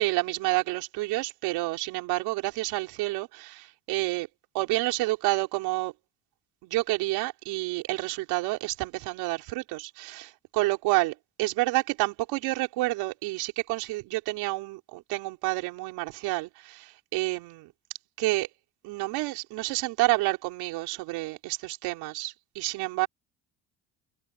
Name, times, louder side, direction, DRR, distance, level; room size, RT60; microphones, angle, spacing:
voice 1, 0.0-4.3 4.5-5.9 6.6-17.7 18.2-18.5 18.8-23.1, right 20 dB, 80° right, 4.1 m, -29 dB
supercardioid pair, 75°, 38 cm